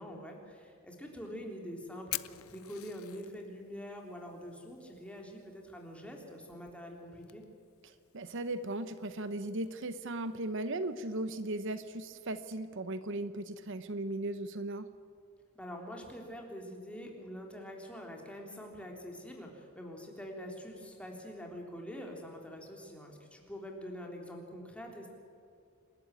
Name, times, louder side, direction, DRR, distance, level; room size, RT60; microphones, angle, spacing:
voice 1, 0.0-7.4 15.5-25.1, equal, 5° left, 1 dB, 3.6 m, -45 dB
Fire, 1.1-12.6, left 17 dB, 85° left, 0.6 m, -50 dB
voice 2, 7.8-14.9, right 2 dB, 60° right, 12 dB, 0.9 m, -37 dB
27.5 x 12.5 x 9.0 m, 2.5 s
head